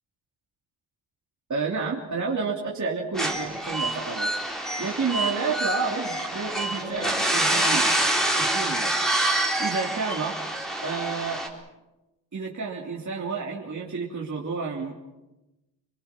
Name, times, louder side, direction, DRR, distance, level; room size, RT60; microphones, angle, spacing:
voice 1, 1.5-4.3 4.8-7.9 8.3-8.9 9.6-10.4 10.8-11.4 12.3-15.0, right 4 dB, 40° right, -3 dB, 3.1 m, -30 dB
sound 1, 3.2-11.5, right 1 dB, ahead, 3.9 m, -26 dB
29.0 x 22.5 x 6.1 m, 1.0 s
wide cardioid pair, 135°, 47 cm